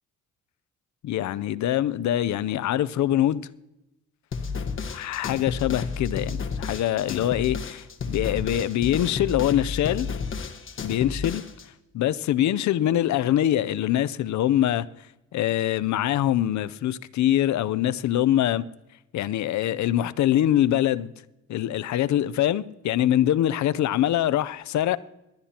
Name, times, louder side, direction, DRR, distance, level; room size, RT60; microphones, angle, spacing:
voice 1, 1.0-3.5 4.9-10.1 10.8-11.4 11.9-14.9 15.3-18.7 19.1-21.1 21.5-25.0, left 12 dB, 70° left, 0.6 m, -24 dB
sound 1, 4.3-11.6, left 5 dB, 40° left, 1.5 m, -32 dB
25.5 x 12.0 x 2.9 m
cardioid pair, 90°, 30 cm